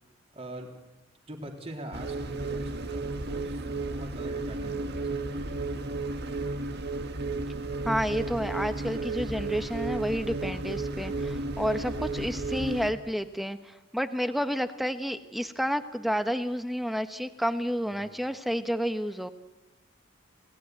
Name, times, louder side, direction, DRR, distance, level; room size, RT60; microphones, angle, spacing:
voice 1, 0.3-0.7 1.3-5.4 17.9-18.2, right 1 dB, 30° right, 2 dB, 3.7 m, -43 dB
sound 1, 1.9-12.9, right 2 dB, 55° right, 1.7 m, -33 dB
voice 2, 7.8-19.3, equal, ahead, 9 dB, 1.1 m, -30 dB
27.5 x 18.0 x 9.6 m, 1.0 s
head